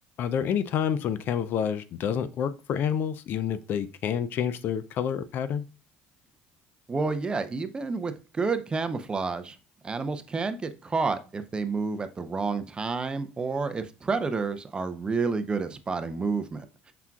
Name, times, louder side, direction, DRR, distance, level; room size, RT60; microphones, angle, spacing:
voice 1, 0.2-5.7, left 8 dB, 55° left, 0.4 m, -28 dB
voice 2, 6.9-9.6 9.8-16.9, right 4 dB, 20° right, 0.5 m, -30 dB
5.8 x 3.6 x 2.3 m
supercardioid pair, 105°, 4 cm